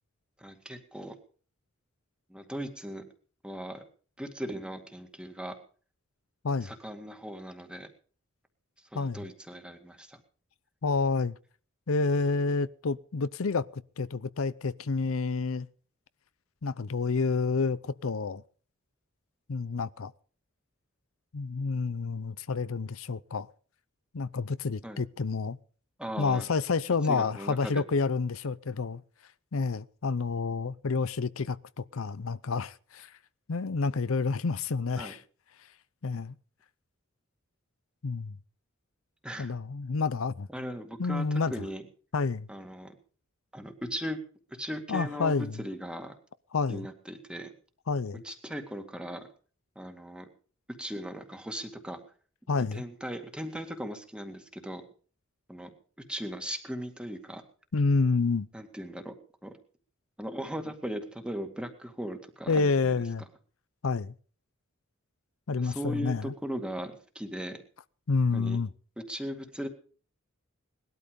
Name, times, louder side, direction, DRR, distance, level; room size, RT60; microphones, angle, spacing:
voice 1, 0.4-1.2 2.3-3.0 3.4-3.8 4.2-5.6 6.6-7.9 8.9-10.2 24.8-25.0 26.0-26.5 27.1-27.8 35.0-35.1 39.2-39.5 40.5-41.8 42.5-42.9 43.5-44.2 44.6-46.2 46.7-47.5 48.2-49.3 49.8-50.3 50.8-52.0 52.7-54.8 55.5-55.7 56.1-57.4 58.5-59.1 59.4-59.5 60.2-62.9 65.6-67.6 68.3-68.6 69.0-69.7, equal, 5° right, 2.1 m, -38 dB
voice 2, 10.8-11.4 11.9-15.7 16.6-18.4 19.5-20.1 21.3-23.5 24.1-25.6 26.2-29.0 29.5-33.1 33.5-35.2 36.0-36.3 38.0-38.3 39.4-40.5 41.0-41.5 42.1-42.5 44.9-45.5 46.5-46.8 47.9-48.2 52.5-52.8 57.7-58.5 62.5-63.2 63.8-64.1 65.5-66.3 68.1-68.7, left 4 dB, 80° left, 0.6 m, -29 dB
20.0 x 12.5 x 5.2 m
head